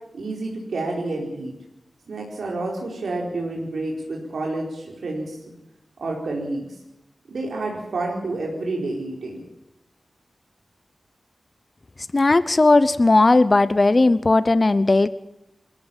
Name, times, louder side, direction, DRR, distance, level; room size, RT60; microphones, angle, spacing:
voice 1, 0.1-1.5 2.1-5.4 6.0-6.8 7.3-9.4, right 2 dB, 85° right, -1 dB, 4.6 m, -29 dB
voice 2, 12.1-15.1, left 2 dB, 35° left, 15 dB, 0.7 m, -16 dB
27.0 x 14.5 x 7.3 m, 0.90 s
wide cardioid pair, 110°, 0 cm